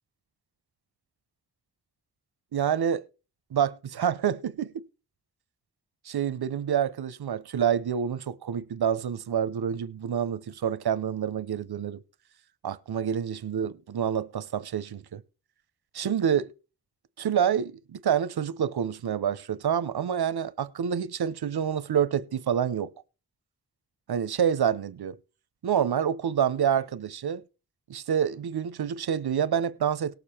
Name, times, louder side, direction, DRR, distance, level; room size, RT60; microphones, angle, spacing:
voice 1, 2.5-3.0 3.5-4.8 6.0-12.0 12.6-15.2 15.9-16.5 17.2-22.9 24.1-25.2 25.6-27.4 27.9-30.2, right 8 dB, 85° right, 0.7 m, -27 dB
18.0 x 6.7 x 4.3 m
wide cardioid pair, 70°, 37 cm